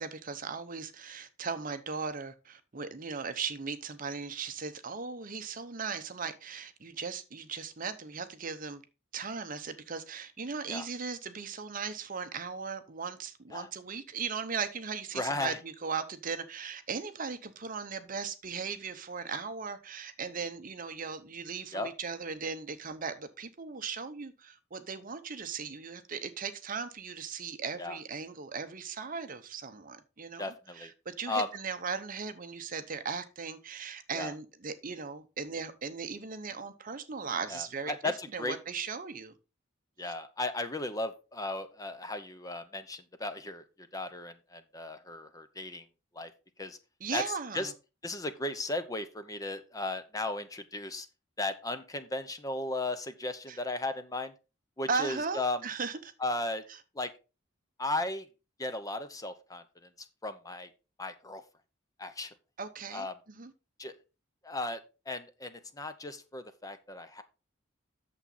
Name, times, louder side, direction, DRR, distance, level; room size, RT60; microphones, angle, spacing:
voice 1, 0.0-8.8 9.1-39.3 40.1-40.2 47.0-47.7 53.5-53.6 54.9-56.0 62.6-63.5, right 5 dB, 40° right, 0.8 m, -38 dB
voice 2, 15.1-15.6 21.7-21.9 27.8-28.0 30.4-30.9 31.3-31.5 34.1-34.3 37.5-38.6 40.0-45.8 46.1-46.3 46.6-46.8 47.1-47.2 47.5-47.7 48.0-51.1 51.4-54.3 54.8-55.6 56.2-56.6 56.9-57.1 57.8-58.3 58.6-59.9 60.2-60.7 61.0-61.4 62.0-62.3 62.9-63.1 63.8-64.0 64.4-64.8 65.1-67.2, left 2 dB, 15° left, 0.7 m, -35 dB
8.7 x 7.0 x 4.0 m
head